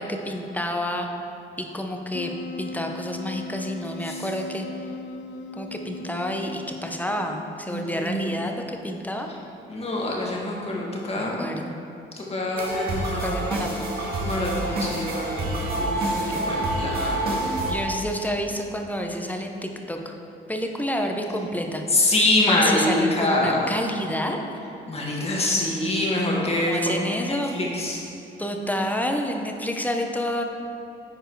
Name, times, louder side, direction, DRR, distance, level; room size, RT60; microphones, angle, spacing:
voice 1, 0.1-1.1 1.6-2.3 2.6-4.9 5.5-9.3 11.0-11.7 13.2-14.0 16.1-16.5 17.7-20.1 20.5-24.4 26.4-27.5 28.4-30.4, left 1 dB, 10° left, 3 dB, 0.8 m, -29 dB
Wind instrument woodwind instrument, 2.1-7.6, left 2 dB, 75° left, 0.4 m, -38 dB
voice 2, 7.7-8.2 9.7-11.5 12.2-13.4 14.2-15.5 15.7-17.4 21.9-23.7 24.9-28.0, left 1 dB, 30° left, -3 dB, 1.8 m, -25 dB
sound 1, 12.5-17.7, right 2 dB, 50° right, 1.8 m, -27 dB
10.0 x 4.5 x 4.7 m, 2.8 s
cardioid pair, 90°, 20 cm